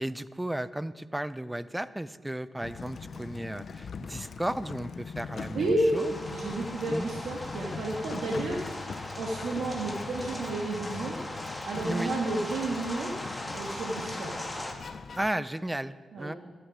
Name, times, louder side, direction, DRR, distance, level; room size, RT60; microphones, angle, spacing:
voice 1, 0.0-6.1 6.9-7.1 11.8-12.1 15.1-16.3, right 1 dB, 10° right, 15 dB, 0.6 m, -34 dB
Sliding door, 2.6-15.3, left 5 dB, 55° left, 0.6 m, -41 dB
voice 2, 5.5-6.0 6.3-11.2 11.6-13.1 13.5-14.5 16.1-16.4, right 2 dB, 75° right, -2 dB, 1.8 m, -31 dB
sound 1, 5.9-14.7, left 1 dB, 10° left, 2.1 m, -39 dB
13.5 x 11.0 x 4.9 m, 1.4 s
supercardioid pair, 55°, 0 cm